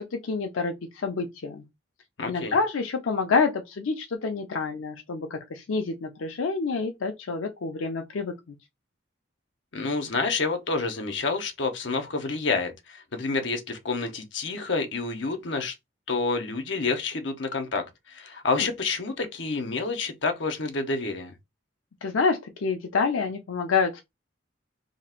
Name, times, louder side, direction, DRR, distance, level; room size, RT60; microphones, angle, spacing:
voice 1, 0.0-1.6 2.2-8.5 18.6-18.7 22.0-24.0, left 4 dB, 90° left, 0.5 m, -28 dB
voice 2, 2.2-2.6 9.7-15.7 16.1-21.3, left 3 dB, 65° left, 0.8 m, -29 dB
2.8 x 2.4 x 4.3 m
head